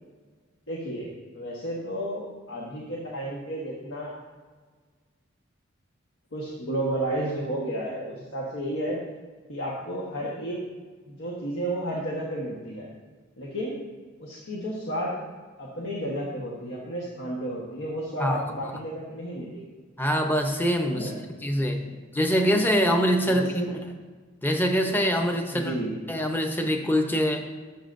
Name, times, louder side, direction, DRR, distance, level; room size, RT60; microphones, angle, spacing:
voice 1, 0.7-4.1 6.3-9.0 9.5-10.6 11.1-12.9 13.4-13.8 14.2-15.2 15.6-19.7 20.9-21.2 23.2-23.6 25.5-25.9, right 1 dB, 85° left, -4 dB, 1.3 m, -32 dB
voice 2, 20.0-21.1 21.4-21.8 22.1-23.4 24.4-25.7 26.1-27.4, equal, 10° left, 3 dB, 0.7 m, -24 dB
13.0 x 7.3 x 2.6 m, 1.4 s
head